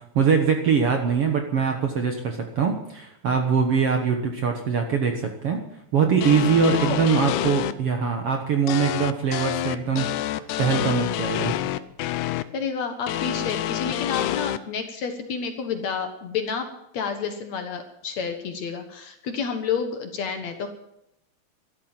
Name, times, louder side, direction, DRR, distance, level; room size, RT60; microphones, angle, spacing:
voice 1, 0.0-5.6 5.9-11.6, right 6 dB, 55° right, 4 dB, 1.8 m, -23 dB
sound 1, 6.2-7.7 8.7-12.4 13.1-14.6, left 13 dB, 75° left, 1.9 m, -27 dB
voice 2, 6.7-7.1 12.5-16.7 16.9-20.7, left 6 dB, 60° left, 6 dB, 2.3 m, -30 dB
13.5 x 12.5 x 7.6 m, 0.79 s
omnidirectional pair, 4.1 m